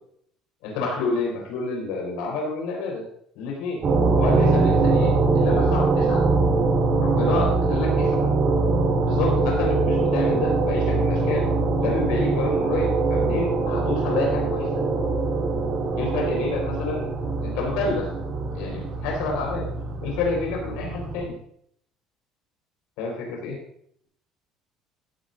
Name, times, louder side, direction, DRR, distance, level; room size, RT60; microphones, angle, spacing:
voice 1, 0.6-3.0 3.3-3.8 4.2-6.2 7.0-8.3 9.0-11.4 11.8-14.7 15.9-17.1 17.4-18.1 18.5-19.7 20.0-21.3 23.0-23.6, left 3 dB, 90° left, 0 dB, 4.5 m, -28 dB
sound 1, 3.8-21.3, right 3 dB, 40° right, 2.6 m, -23 dB
15.5 x 10.0 x 2.6 m, 0.67 s
cardioid pair, 155°, 0 cm